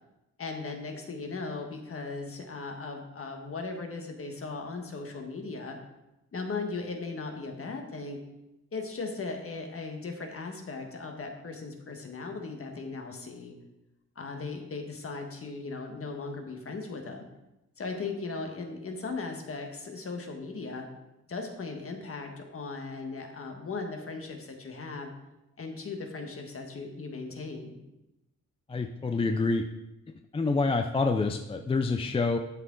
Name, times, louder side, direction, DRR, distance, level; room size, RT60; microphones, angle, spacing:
voice 1, 0.4-5.8 6.3-8.2 8.7-13.5 14.1-17.2 17.8-20.9 21.3-25.1 25.6-27.8, left 3 dB, 45° left, 3 dB, 1.4 m, -37 dB
voice 2, 28.7-29.6 30.1-32.4, left 3 dB, 20° left, 5 dB, 0.4 m, -27 dB
12.5 x 6.0 x 3.8 m, 0.94 s
wide cardioid pair, 160°, 30 cm